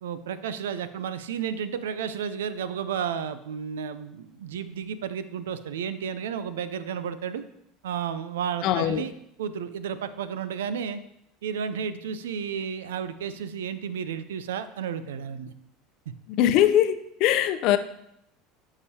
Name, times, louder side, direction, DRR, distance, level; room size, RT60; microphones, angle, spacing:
voice 1, 0.0-7.4 7.8-9.1 9.4-11.0 11.4-15.5 16.1-16.2, right 7 dB, 85° right, 13 dB, 0.4 m, -32 dB
voice 2, 8.6-9.0 16.4-17.8, left 11 dB, 60° left, 11 dB, 0.5 m, -21 dB
9.6 x 4.9 x 2.8 m, 0.75 s
hypercardioid pair, 90°, 0 cm